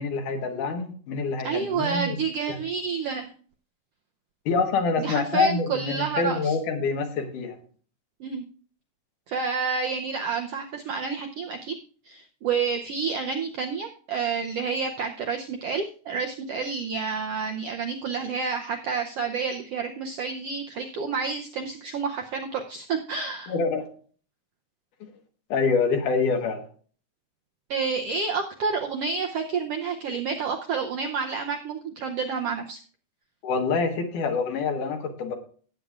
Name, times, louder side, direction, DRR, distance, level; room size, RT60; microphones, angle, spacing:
voice 1, 0.0-2.2 2.5-2.6 4.5-7.6 23.5-23.9 25.0-25.1 25.5-26.6 33.4-35.4, left 4 dB, 75° left, 4 dB, 2.9 m, -26 dB
voice 2, 1.4-3.3 5.0-6.6 8.2-8.4 9.3-11.7 12.0-23.5 27.7-32.8, right 5 dB, 80° right, 3 dB, 1.4 m, -29 dB
17.5 x 8.5 x 2.4 m, 0.43 s
omnidirectional pair, 3.7 m